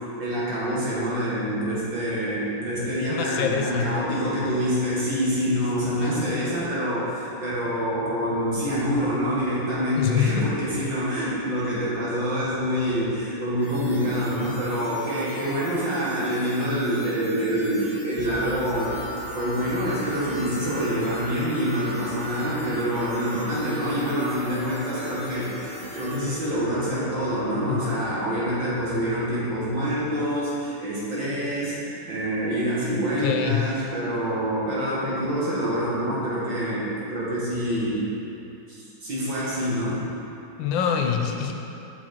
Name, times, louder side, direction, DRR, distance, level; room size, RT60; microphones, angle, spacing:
voice 1, 0.2-19.0 19.3-38.1 38.7-40.1, equal, 65° right, -8 dB, 2.4 m, -26 dB
voice 2, 3.1-3.9 6.0-6.2 9.9-10.5 27.7-28.0 33.2-33.7 40.6-41.5, left 8 dB, 80° left, 3 dB, 1.3 m, -25 dB
sound 1, 13.6-26.2, equal, 90° right, 2.8 m, -46 dB
sound 2, 18.2-29.9, equal, 40° left, 0.8 m, -38 dB
6.5 x 6.1 x 4.5 m, 2.8 s
omnidirectional pair, 2.2 m